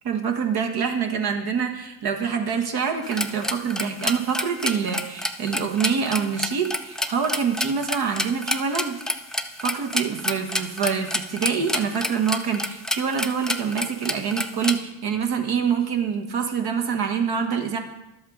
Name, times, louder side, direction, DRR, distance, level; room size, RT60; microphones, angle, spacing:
voice 1, 0.0-9.0 9.3-17.8, right 6 dB, 55° right, 5 dB, 1.4 m, -26 dB
sound 1, 3.0-14.8, left 1 dB, ahead, 0.4 m, -28 dB
11.5 x 7.9 x 3.9 m, 0.91 s
supercardioid pair, 80°, 45 cm